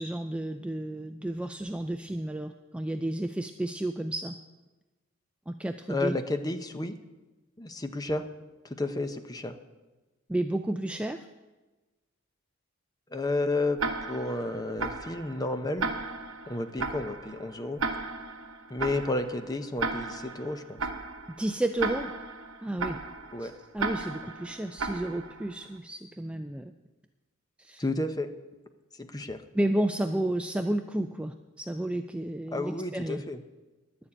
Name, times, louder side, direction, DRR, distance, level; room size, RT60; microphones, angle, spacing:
voice 1, 0.0-4.4 5.5-6.2 10.3-11.3 21.4-22.1 22.6-23.0 23.4-26.7 27.6-27.8 29.5-33.2, right 1 dB, 5° right, 7 dB, 0.3 m, -31 dB
voice 2, 5.9-7.0 7.6-8.2 8.6-9.5 13.1-13.8 14.1-15.9 16.5-17.8 18.7-20.8 23.3-23.5 27.8-28.3 29.0-29.4 32.5-33.4, left 2 dB, 20° left, 8 dB, 0.7 m, -31 dB
Tick-tock, 13.8-25.6, right 3 dB, 70° right, 1.1 m, -35 dB
11.0 x 6.9 x 8.6 m, 1.2 s
head